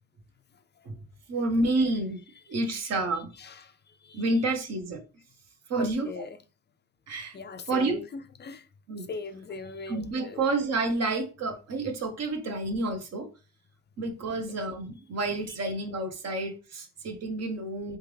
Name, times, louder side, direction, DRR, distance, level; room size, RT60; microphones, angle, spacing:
voice 1, 1.3-2.2 2.5-3.3 4.1-5.0 5.7-6.2 7.1-7.3 7.7-8.0 8.9-9.1 9.9-13.3 14.0-18.0, right 2 dB, 60° right, 1.1 m, -29 dB
voice 2, 2.5-4.3 5.8-6.4 7.3-8.7 9.0-10.5 14.3-14.4 15.5-15.6, left 4 dB, 35° left, 0.4 m, -42 dB
3.6 x 3.5 x 3.3 m
cardioid pair, 90°, 30 cm